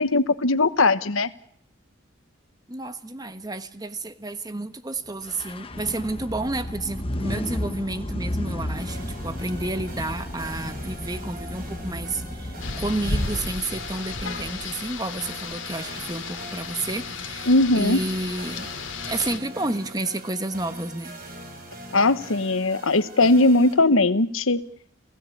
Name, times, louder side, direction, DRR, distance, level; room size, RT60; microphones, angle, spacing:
voice 1, 0.0-1.3 17.5-18.0 21.9-24.6, left 2 dB, 80° left, 13 dB, 1.2 m, -19 dB
voice 2, 2.7-18.7 19.1-21.2, right 2 dB, 20° right, 11 dB, 1.2 m, -31 dB
sound 1, 5.2-13.2, left 1 dB, 25° left, 1.1 m, -33 dB
sound 2, 8.7-23.7, right 1 dB, 45° right, 5.7 m, -42 dB
Rain, 12.6-19.4, left 4 dB, 65° left, 2.8 m, -33 dB
29.5 x 17.0 x 8.6 m, 0.64 s
head